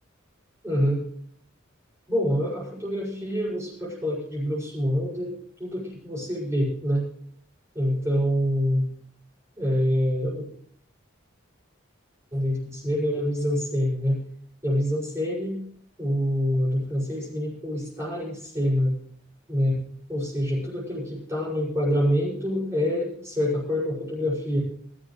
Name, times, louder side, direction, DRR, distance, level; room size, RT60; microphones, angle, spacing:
voice 1, 0.6-1.0 2.1-5.3 5.6-7.1 7.7-8.9 9.6-10.5 12.3-14.2 14.6-15.6 16.0-18.9 19.5-19.7 20.1-24.6, equal, 15° right, -8 dB, 6.1 m, -26 dB
21.0 x 12.5 x 3.2 m, 0.63 s
head